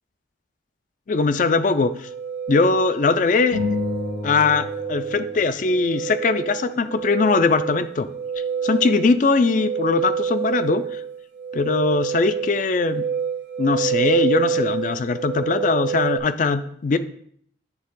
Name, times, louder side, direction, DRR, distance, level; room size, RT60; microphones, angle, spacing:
voice 1, 1.1-1.9 2.5-3.6 4.2-8.1 8.6-10.8 11.5-13.0 13.6-17.0, left 4 dB, 45° left, 13 dB, 0.3 m, -20 dB
sound 1, 2.0-16.2, right 7 dB, 65° right, 0.9 m, -28 dB
sound 2, 3.5-6.1, left 4 dB, 90° left, 2.6 m, -30 dB
9.0 x 3.4 x 3.7 m, 0.64 s
head